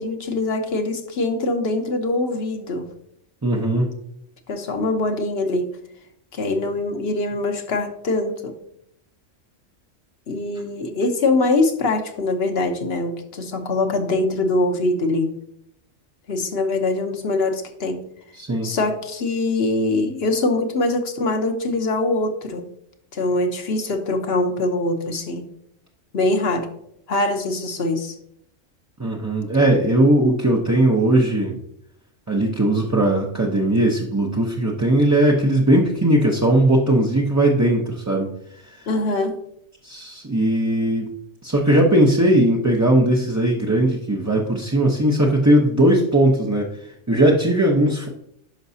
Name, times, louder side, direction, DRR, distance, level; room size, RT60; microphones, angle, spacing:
voice 1, 0.0-2.8 4.5-5.7 6.3-8.5 10.3-15.3 16.3-18.0 18.6-22.7 23.1-25.4 26.1-26.7 27.1-28.1 38.9-39.4, left 2 dB, 55° left, 6 dB, 1.1 m, -23 dB
voice 2, 3.4-3.9 18.4-18.7 29.0-31.5 32.3-38.3 39.8-41.1 41.4-46.7 47.1-48.1, right 1 dB, 20° right, -3 dB, 0.6 m, -18 dB
10.5 x 5.9 x 2.7 m, 0.73 s
omnidirectional pair, 1.3 m